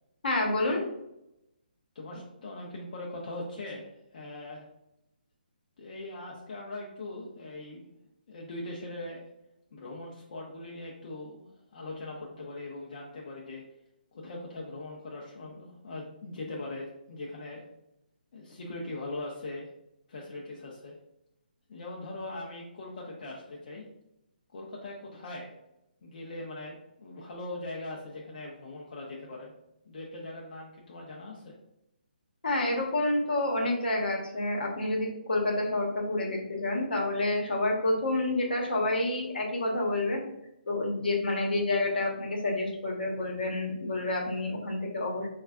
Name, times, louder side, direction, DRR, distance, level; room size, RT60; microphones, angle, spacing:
voice 1, 0.2-0.8 32.4-40.2 40.7-45.3, left 2 dB, 70° left, 0 dB, 0.9 m, -29 dB
voice 2, 1.9-4.7 5.8-7.9 8.3-9.2 9.7-13.6 14.1-17.6 18.3-19.7 20.1-20.9 21.7-23.9 24.5-25.5 26.0-29.5 29.8-31.6 43.0-43.3, left 2 dB, 50° left, -2 dB, 0.5 m, -41 dB
3.9 x 2.3 x 2.3 m, 0.85 s
hypercardioid pair, 150°, 5 cm